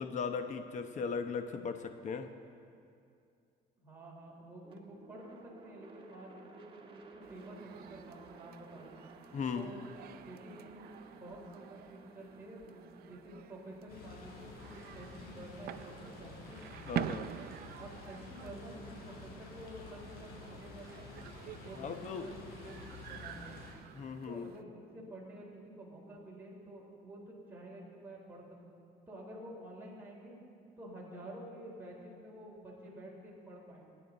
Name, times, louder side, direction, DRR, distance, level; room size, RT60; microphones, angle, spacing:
voice 1, 0.0-2.3 9.3-9.7 16.9-17.3 21.7-22.3 23.9-24.5, left 5 dB, 45° left, 7 dB, 1.0 m, -37 dB
voice 2, 3.8-5.2 5.6-9.0 9.5-9.9 10.1-16.8 17.8-21.0 21.6-23.6 24.3-28.7 29.1-30.4 30.8-33.9, right 1 dB, 10° right, -5 dB, 4.0 m, -50 dB
sound 1, 4.6-16.7, right 4 dB, 30° right, 1.6 m, -57 dB
sound 2, 7.2-24.6, right 12 dB, 65° right, 0.5 m, -47 dB
sound 3, 13.9-23.7, left 3 dB, 70° left, 4.2 m, -50 dB
26.5 x 10.5 x 4.0 m, 2.4 s
cardioid pair, 110°, 17 cm